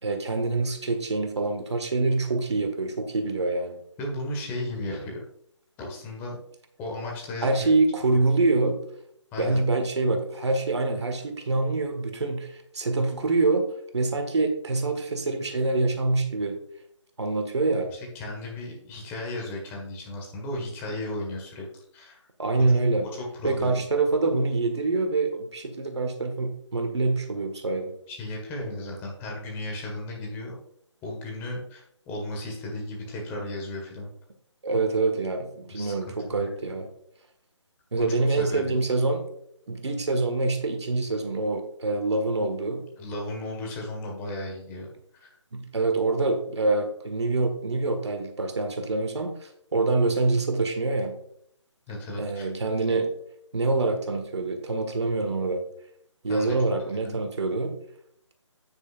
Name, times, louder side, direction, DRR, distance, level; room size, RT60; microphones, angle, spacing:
voice 1, 0.0-3.8 7.4-8.8 9.4-13.7 13.9-16.6 17.2-17.9 22.4-23.1 23.4-27.9 34.6-36.9 37.9-39.2 39.7-42.8 45.5-51.2 52.2-53.1 53.5-55.6 56.2-57.7, right 3 dB, 60° right, 6 dB, 1.8 m, -25 dB
voice 2, 4.0-5.2 5.8-6.4 6.8-7.7 9.3-9.6 17.9-22.2 23.1-23.9 28.1-30.5 31.0-34.1 35.7-35.9 36.3-36.5 37.9-38.7 43.0-44.9 45.1-45.3 51.9-52.5 52.9-53.0 56.3-56.5 57.0-57.2, left 1 dB, 15° left, -1 dB, 1.7 m, -35 dB
9.3 x 9.3 x 2.5 m, 0.69 s
figure-of-eight pair, 150°, 16 cm